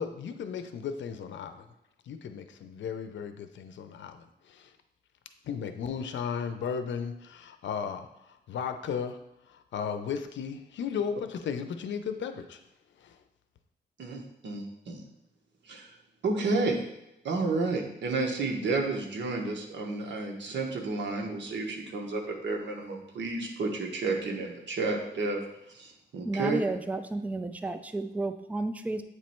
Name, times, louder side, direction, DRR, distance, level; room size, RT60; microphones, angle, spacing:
voice 1, 0.0-1.7 2.1-4.7 5.4-9.2 9.5-12.6 13.0-13.2, left 7 dB, 85° left, 8 dB, 0.6 m, -35 dB
voice 2, 14.0-15.0 15.7-15.9 16.2-16.8 17.2-25.4 25.7-26.6, right 3 dB, 75° right, 1 dB, 1.1 m, -31 dB
voice 3, 26.2-29.0, right 2 dB, 10° right, 8 dB, 0.4 m, -32 dB
8.1 x 3.1 x 4.4 m, 0.85 s
wide cardioid pair, 120°, 19 cm